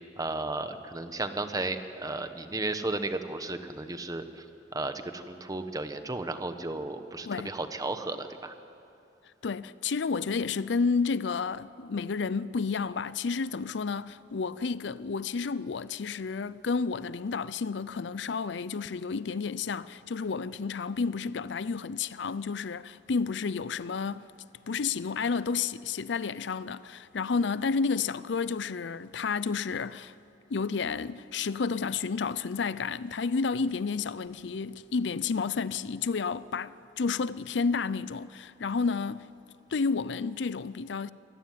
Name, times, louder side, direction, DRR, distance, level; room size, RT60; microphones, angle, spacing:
voice 1, 0.2-4.4 4.7-8.5, right 2 dB, 20° right, 1.1 m, -34 dB
voice 2, 9.4-24.3 24.7-30.1 30.5-39.3 39.7-41.1, left 5 dB, 70° left, 0.5 m, -31 dB
24.0 x 17.0 x 9.4 m
head